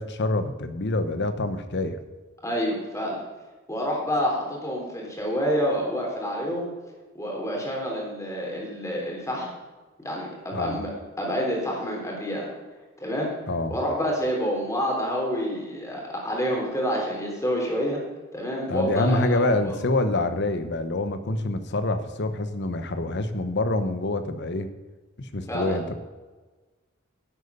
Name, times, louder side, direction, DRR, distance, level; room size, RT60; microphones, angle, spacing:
voice 1, 0.0-2.0 10.5-10.8 13.5-13.8 18.7-24.7 25.2-26.0, left 2 dB, 55° left, 10 dB, 1.0 m, -26 dB
voice 2, 2.4-3.2 3.7-6.7 7.1-9.5 10.0-10.9 11.2-12.5 13.0-13.3 13.7-18.0 18.3-19.8 25.5-25.8, equal, 15° left, -2 dB, 3.5 m, -28 dB
10.5 x 8.1 x 6.8 m, 1.3 s
head